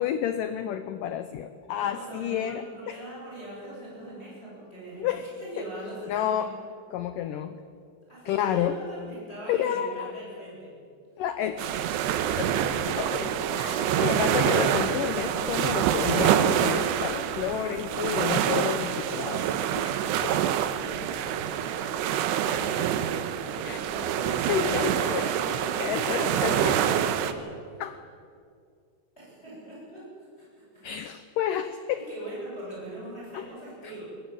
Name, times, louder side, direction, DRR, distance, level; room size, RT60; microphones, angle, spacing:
voice 1, 0.0-3.0 5.0-5.3 6.1-6.5 6.9-7.6 8.3-8.8 9.5-10.1 11.2-11.9 12.4-12.5 12.9-20.0 20.2-20.4 22.8-22.9 23.7-23.8 24.5-25.6 25.8-27.0 27.8-28.0 30.8-32.0 33.3-33.4 33.8-33.9, left 10 dB, 80° left, 10 dB, 1.9 m, -30 dB
voice 2, 1.7-5.1 5.4-6.7 8.1-10.7 13.0-13.9 20.1-27.8 29.2-30.0 30.4-30.5 30.7-30.8 31.9-34.0, right 1 dB, 15° left, -7 dB, 8.1 m, -42 dB
sound 1, 11.6-27.3, right 10 dB, 85° right, 3.2 m, -26 dB
22.0 x 20.5 x 9.0 m, 2.3 s
omnidirectional pair, 4.9 m